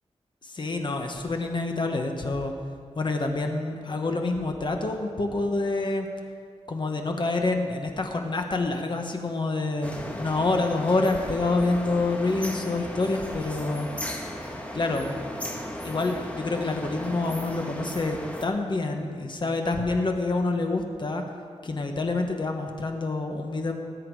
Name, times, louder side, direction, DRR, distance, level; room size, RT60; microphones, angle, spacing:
voice 1, 0.4-2.5 2.9-6.1 6.7-13.9 14.7-15.3 15.8-21.2 21.6-23.7, left 3 dB, 40° left, 3 dB, 1.3 m, -27 dB
sound 1, 9.8-18.5, left 1 dB, 10° left, 1.3 m, -36 dB
19.5 x 8.4 x 4.8 m, 2.1 s
wide cardioid pair, 135°, 12 cm